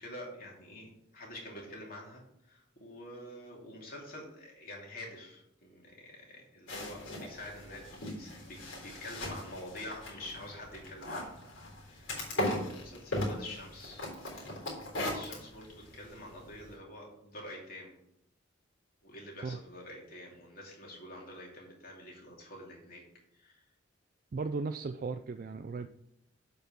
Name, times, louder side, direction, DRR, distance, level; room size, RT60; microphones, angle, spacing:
voice 1, 0.0-11.4 11.7-14.1 14.5-14.7 15.0-18.0 19.0-23.0 23.3-23.7, left 1 dB, 50° left, -2 dB, 2.7 m, -47 dB
sound 1, 6.7-16.7, left 1 dB, 75° left, 3.9 m, -39 dB
voice 2, 24.3-25.9, right 4 dB, 45° right, 8 dB, 0.4 m, -36 dB
7.9 x 5.5 x 5.9 m, 0.77 s
head